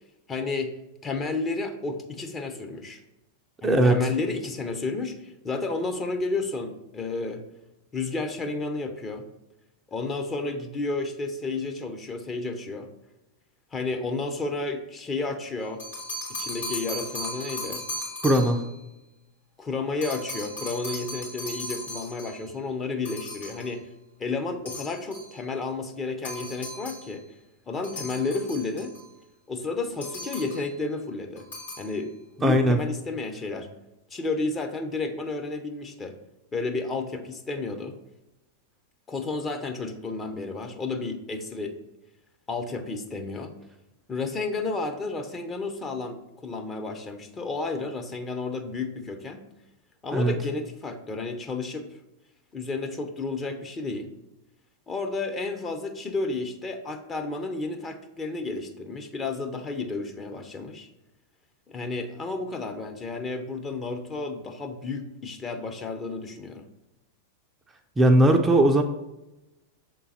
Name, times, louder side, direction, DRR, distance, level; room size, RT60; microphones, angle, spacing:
voice 1, 0.3-3.0 3.6-7.4 7.9-9.2 9.9-12.9 13.7-15.8 16.3-17.8 19.6-23.9 24.2-27.2 27.7-28.9 29.5-31.5 31.8-32.1 32.4-33.7 34.1-36.1 36.5-37.9 39.1-41.8 42.5-43.5 44.1-49.5 50.0-51.9 52.5-54.1 54.9-60.9 61.7-66.7, left 3 dB, 20° left, 5 dB, 0.8 m, -31 dB
voice 2, 3.6-4.0 18.2-18.7 32.4-32.8 50.1-50.3 68.0-68.8, right 1 dB, 15° right, 4 dB, 0.5 m, -19 dB
sound 1, 15.6-18.7 20.0-22.4 23.0-23.7 24.7-25.3 26.2-27.1 27.8-29.1 30.0-30.7 31.4-31.9, left 1 dB, 75° left, 2.1 m, -37 dB
7.0 x 3.8 x 4.2 m, 0.96 s
figure-of-eight pair, 95°, 0 cm